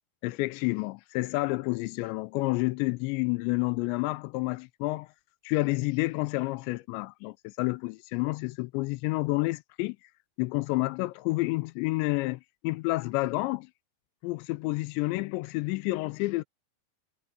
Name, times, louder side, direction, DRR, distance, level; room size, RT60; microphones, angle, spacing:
voice 1, 0.2-5.1 5.4-10.0 10.4-13.7 14.2-16.4, left 22 dB, 85° left, 2.8 m, -29 dB
omnidirectional pair, 5.2 m